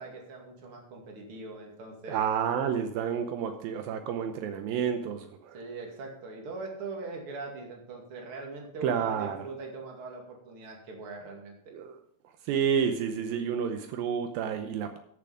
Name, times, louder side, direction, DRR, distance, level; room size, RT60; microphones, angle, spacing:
voice 1, 0.0-2.2 4.7-4.8 5.5-11.7, right 3 dB, 40° right, 1 dB, 2.3 m, -41 dB
voice 2, 2.1-5.6 8.8-9.4 11.7-12.0 12.5-15.0, right 7 dB, 90° right, 7 dB, 2.0 m, -30 dB
14.5 x 7.0 x 5.0 m, 0.67 s
omnidirectional pair, 5.2 m